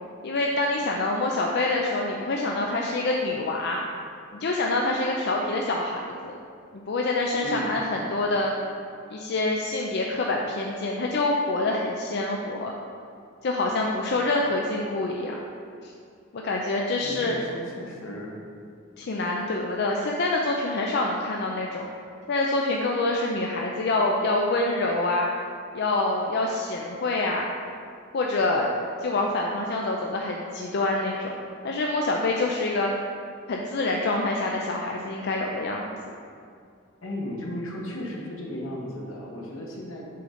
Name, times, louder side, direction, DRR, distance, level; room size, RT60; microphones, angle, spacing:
voice 1, 0.2-3.8 4.3-6.3 6.7-8.5 9.1-12.7 13.4-15.3 15.8-15.9 16.3-17.4 19.0-21.9 22.3-25.3 25.7-27.4 28.1-28.7 29.0-31.3 31.6-32.9 33.5-36.0, left 2 dB, 55° left, -1 dB, 0.4 m, -26 dB
voice 2, 17.0-18.3 37.0-40.0, equal, 75° left, -2 dB, 1.2 m, -35 dB
6.7 x 3.8 x 5.0 m, 2.3 s
head